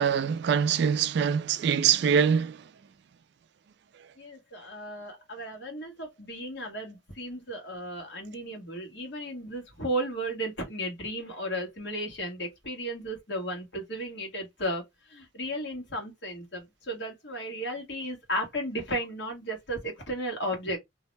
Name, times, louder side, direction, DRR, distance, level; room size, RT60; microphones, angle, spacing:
voice 1, 0.0-2.6, right 7 dB, 60° right, 0.3 m, -24 dB
voice 2, 4.2-14.8 15.1-20.8, equal, 60° left, 1.2 m, -34 dB
2.7 x 2.0 x 3.1 m
head